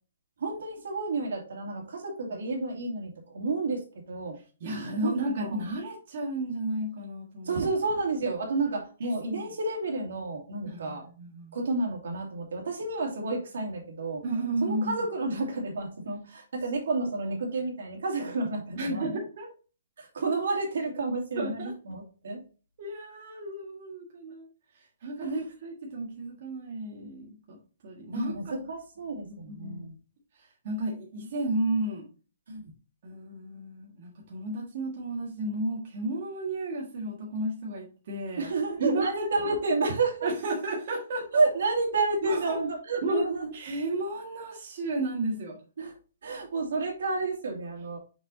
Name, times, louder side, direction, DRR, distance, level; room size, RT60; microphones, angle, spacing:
voice 1, 0.4-4.4 5.0-5.6 7.4-11.0 11.5-14.2 14.6-19.0 20.0-22.4 25.2-25.3 28.1-29.9 32.5-32.6 38.4-40.3 41.3-43.5 45.8-45.9 46.2-48.0, right 3 dB, 70° right, 1 dB, 2.5 m, -30 dB
voice 2, 4.6-7.6 9.3-9.4 10.6-11.5 14.2-15.0 18.7-19.5 21.4-21.7 22.8-24.4 25.0-27.6 27.8-28.5 29.3-29.9 30.4-32.0 33.0-38.5 38.8-39.3 40.2-41.2 42.2-42.6 43.0-43.2 43.5-45.6, right 1 dB, 40° right, -2 dB, 1.7 m, -33 dB
6.2 x 5.9 x 2.7 m, 0.36 s
hypercardioid pair, 175°, 0 cm